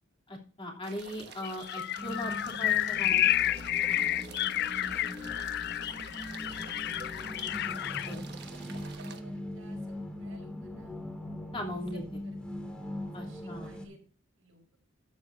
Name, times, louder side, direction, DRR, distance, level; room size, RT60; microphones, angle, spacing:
voice 1, 0.3-3.2 8.0-8.2 11.5-12.0 13.1-13.7, left 1 dB, 25° left, 0 dB, 3.0 m, -39 dB
sound 1, 0.8-9.2, right 6 dB, 55° right, 1.2 m, -49 dB
sound 2, 1.4-8.1, left 13 dB, 55° left, 0.3 m, -30 dB
sound 3, 2.0-13.9, left 1 dB, 5° left, 2.2 m, -41 dB
voice 2, 4.4-5.1 5.6-6.5 8.7-10.9 11.9-12.8 13.1-14.0 14.4-14.8, right 2 dB, 80° right, 3 dB, 4.7 m, -57 dB
12.5 x 9.9 x 2.6 m, 0.38 s
head